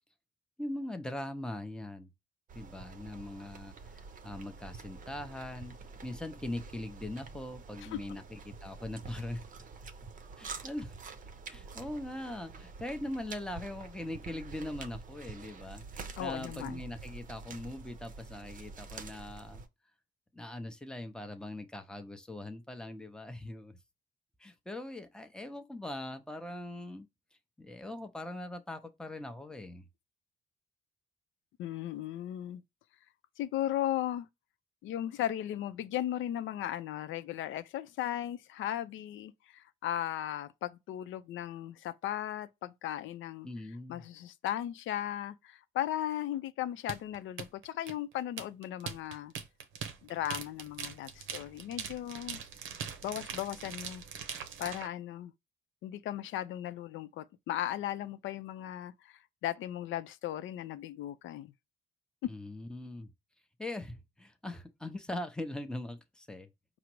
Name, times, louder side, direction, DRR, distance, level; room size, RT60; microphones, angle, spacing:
voice 1, 0.6-2.1 2.5-5.7 6.0-9.4 10.4-11.0 11.5-19.6 20.3-23.8 24.4-27.1 27.6-29.8 43.4-44.0 62.3-63.1 63.6-66.5, left 1 dB, 5° left, 0.6 m, -41 dB
sound 1, 2.5-19.7, right 4 dB, 40° right, 0.6 m, -47 dB
voice 2, 16.2-16.8 31.6-32.6 33.4-34.3 34.8-43.5 43.9-49.3 50.0-52.4 53.0-54.0 54.6-55.3 55.8-61.5, left 12 dB, 75° left, 0.4 m, -36 dB
sound 2, 46.9-54.9, right 7 dB, 90° right, 0.6 m, -41 dB
4.9 x 2.0 x 4.5 m
cardioid pair, 90°, 20 cm